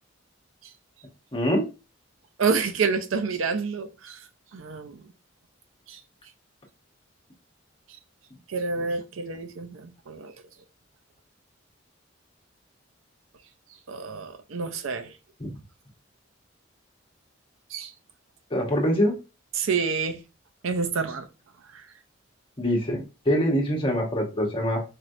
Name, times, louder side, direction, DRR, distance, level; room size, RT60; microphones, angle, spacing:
voice 1, 1.3-1.7 15.4-15.5 18.5-19.2 22.6-24.8, equal, 25° left, 0 dB, 1.1 m, -24 dB
voice 2, 2.4-4.2 4.5-5.0 5.9-6.0 8.5-10.3 13.9-15.1 17.7-17.9 19.5-20.2 20.6-21.3, right 5 dB, 90° right, 10 dB, 0.6 m, -28 dB
4.4 x 3.2 x 2.6 m, 0.29 s
head